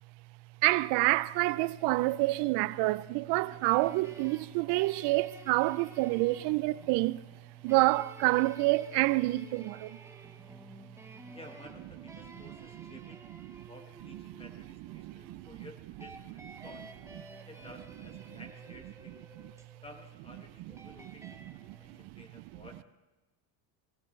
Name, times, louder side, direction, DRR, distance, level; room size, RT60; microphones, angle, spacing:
voice 1, 0.6-7.2 7.6-10.0 12.8-12.9 14.3-14.5 14.9-15.5 16.6-16.7 18.3-18.4 21.2-22.2, right 20 dB, 60° right, 0.5 m, -28 dB
sound 1, 3.3-22.1, right 2 dB, 5° right, 0.8 m, -53 dB
voice 2, 11.3-13.3 13.6-16.9 17.3-19.2 19.8-22.8, left 1 dB, 10° left, 1.2 m, -53 dB
19.5 x 15.5 x 3.2 m
cardioid pair, 150°, 46 cm